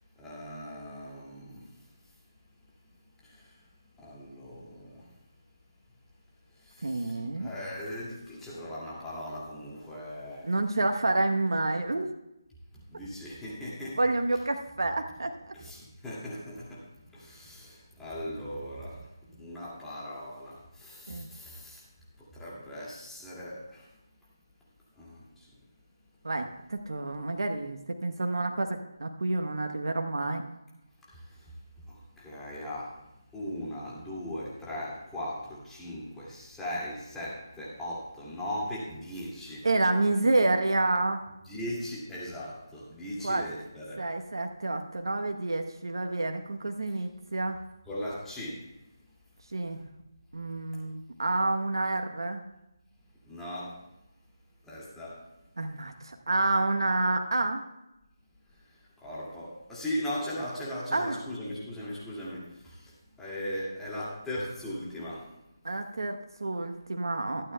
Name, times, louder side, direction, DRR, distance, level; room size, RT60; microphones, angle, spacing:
voice 1, 0.2-1.7 3.2-3.5 4.0-5.1 6.6-10.6 12.9-14.0 15.5-21.8 22.2-23.9 25.0-25.5 31.1-31.5 31.9-33.0 33.3-39.7 41.4-44.1 47.9-48.6 53.3-53.8 54.6-55.2 59.0-65.3, left 1 dB, 5° left, -7 dB, 2.2 m, -39 dB
voice 2, 6.8-7.5 10.4-12.1 14.0-15.5 21.1-21.3 26.2-30.4 39.6-41.2 43.2-43.4 44.0-47.6 49.5-49.8 50.3-52.4 55.6-57.6 60.9-61.2 65.6-67.5, right 2 dB, 75° right, 5 dB, 0.9 m, -29 dB
24.5 x 8.7 x 2.2 m, 0.92 s
figure-of-eight pair, 160°, 2 cm